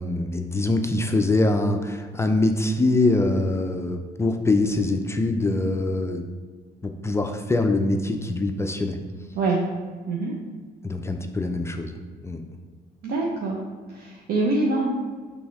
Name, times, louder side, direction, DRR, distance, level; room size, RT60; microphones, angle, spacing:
voice 1, 0.0-6.3 6.8-9.0 10.8-12.0 12.2-12.4, left 2 dB, 15° left, 5 dB, 0.4 m, -23 dB
voice 2, 13.0-13.6 13.9-14.9, right 3 dB, 70° right, -2 dB, 0.9 m, -24 dB
6.1 x 3.6 x 4.7 m, 1.5 s
cardioid pair, 110°, 17 cm